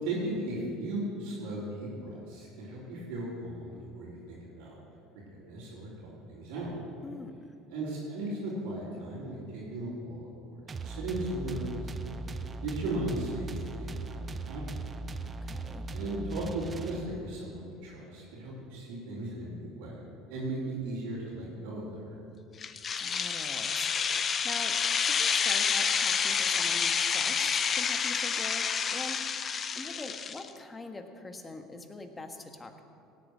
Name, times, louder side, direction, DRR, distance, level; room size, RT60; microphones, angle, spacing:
voice 1, 0.0-4.8 5.4-6.7 7.7-12.1 12.6-14.6 15.9-22.2, right 1 dB, 75° right, -11 dB, 4.0 m, -37 dB
voice 2, 7.0-7.5 15.4-15.9 23.0-32.8, left 2 dB, 20° left, 6 dB, 1.5 m, -44 dB
sound 1, 10.7-17.4, right 3 dB, 30° right, 0.7 m, -39 dB
sound 2, 22.6-30.5, left 6 dB, 40° left, 0.7 m, -29 dB
17.5 x 8.3 x 6.3 m, 2.5 s
hypercardioid pair, 75°, 0 cm